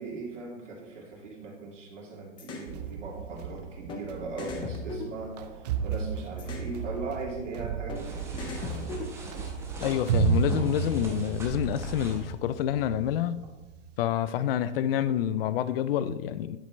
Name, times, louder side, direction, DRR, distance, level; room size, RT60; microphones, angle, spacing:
voice 1, 0.0-9.0, right 3 dB, 90° right, 2.7 m, -39 dB
sound 1, 2.4-2.7 3.9-4.0 4.4-5.8 6.4-6.7 7.9-8.0 8.4-9.5, left 3 dB, 15° left, 0.6 m, -38 dB
sound 2, 2.7-13.9, right 6 dB, 35° right, 0.5 m, -33 dB
sound 3, 7.9-12.3, right 2 dB, 5° right, 1.0 m, -40 dB
voice 2, 9.8-13.4 14.0-16.6, left 10 dB, 55° left, 0.5 m, -28 dB
10.0 x 5.2 x 4.0 m
hypercardioid pair, 150°, 36 cm